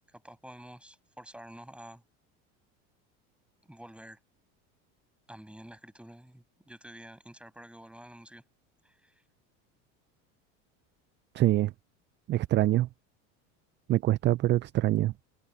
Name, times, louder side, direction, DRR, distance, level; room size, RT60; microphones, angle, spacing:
voice 1, 0.1-2.0 3.6-4.2 5.3-8.4 8.8-9.2, right 1 dB, 5° right, 7.2 m, -49 dB
voice 2, 11.3-11.7 12.3-12.9 13.9-15.1, right 15 dB, 30° right, 0.4 m, -24 dB
supercardioid pair, 105°, 37 cm